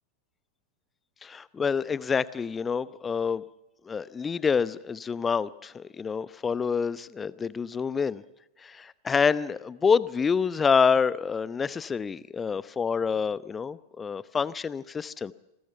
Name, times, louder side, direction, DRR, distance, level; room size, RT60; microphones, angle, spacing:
voice 1, 1.2-3.4 3.9-8.2 8.6-15.3, left 6 dB, 15° left, 19 dB, 0.8 m, -27 dB
28.5 x 21.0 x 5.9 m, 0.93 s
figure-of-eight pair, 90°, 0 cm